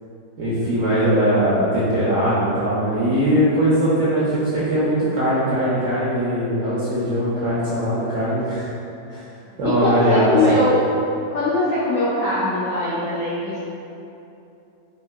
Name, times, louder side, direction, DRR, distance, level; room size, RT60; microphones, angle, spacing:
voice 1, 0.4-8.7 9.1-9.2 9.6-10.4, equal, 65° right, -10 dB, 0.8 m, -20 dB
voice 2, 9.6-10.8 11.3-13.6, left 1 dB, 70° left, -9 dB, 0.8 m, -21 dB
4.5 x 2.7 x 2.2 m, 2.8 s
omnidirectional pair, 2.0 m